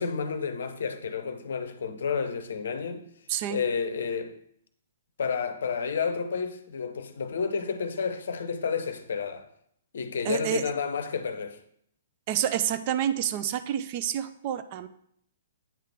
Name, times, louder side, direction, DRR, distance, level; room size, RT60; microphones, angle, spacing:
voice 1, 0.0-3.0 3.5-4.3 5.2-9.4 9.9-11.6, left 5 dB, 65° left, 0.6 m, -30 dB
voice 2, 3.3-3.6 10.2-10.6 12.3-14.9, right 10 dB, 40° right, 0.4 m, -28 dB
8.5 x 3.7 x 3.5 m
figure-of-eight pair, 120°, 0 cm